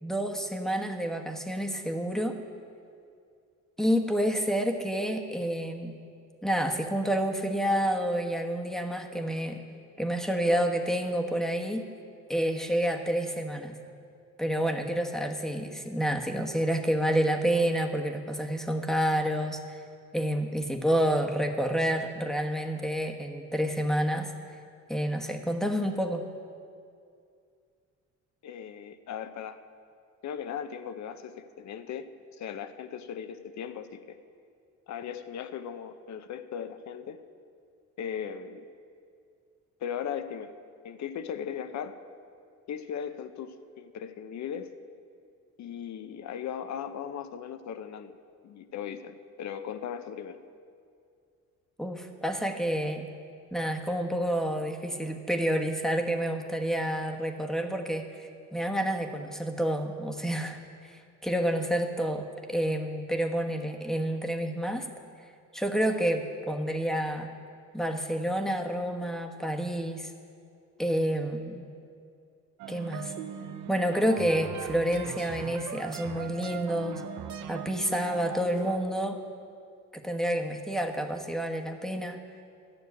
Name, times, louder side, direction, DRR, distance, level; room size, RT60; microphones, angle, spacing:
voice 1, 0.0-2.4 3.8-6.0 6.4-9.6 10.0-11.8 12.3-13.8 14.4-19.8 20.1-24.3 24.9-26.2 51.8-53.1 53.5-64.9 65.5-67.3 67.7-70.1 70.8-71.7 72.7-73.1 73.7-77.0 77.5-79.2 79.9-82.2, equal, ahead, 3 dB, 1.2 m, -29 dB
voice 2, 28.4-29.6 30.2-34.2 34.9-37.2 38.0-38.7 39.8-40.5 40.8-42.0 42.7-44.7 45.6-48.2 48.4-50.4, left 8 dB, 65° left, 10 dB, 0.8 m, -38 dB
sound 1, 72.6-78.8, right 8 dB, 75° right, 0.8 m, -39 dB
12.0 x 6.8 x 9.3 m, 2.3 s
cardioid pair, 90°, 30 cm